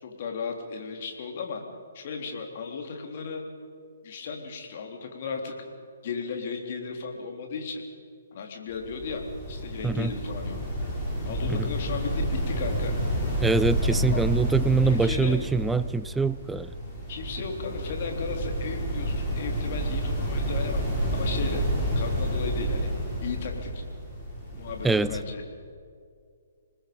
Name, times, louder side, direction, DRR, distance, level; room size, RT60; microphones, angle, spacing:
voice 1, 0.0-1.6 1.9-3.4 4.0-5.5 6.0-7.8 8.3-10.6 11.3-13.0 13.8-14.2 14.8-15.4 17.1-20.8 21.1-21.6 21.9-22.9 23.2-23.8 24.5-25.4, left 5 dB, 45° left, 3 dB, 3.6 m, -35 dB
sound 1, 8.7-25.2, equal, 20° left, 7.1 m, -30 dB
voice 2, 13.4-16.7 24.8-25.2, right 4 dB, 5° right, 17 dB, 0.5 m, -24 dB
27.0 x 20.5 x 5.4 m, 2.2 s
figure-of-eight pair, 130°, 0 cm